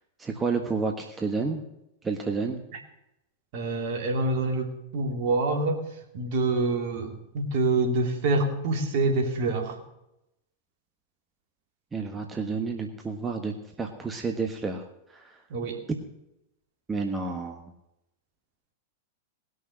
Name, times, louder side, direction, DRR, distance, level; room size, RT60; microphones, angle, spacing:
voice 1, 0.2-1.6 2.0-2.6 11.9-14.8 15.1-15.2 16.9-17.6, right 4 dB, 15° right, 4 dB, 1.4 m, -30 dB
voice 2, 3.5-5.8 6.1-9.8 15.5-15.8, right 3 dB, 55° right, 4 dB, 2.6 m, -26 dB
19.5 x 6.5 x 6.2 m, 0.86 s
hypercardioid pair, 100°, 0 cm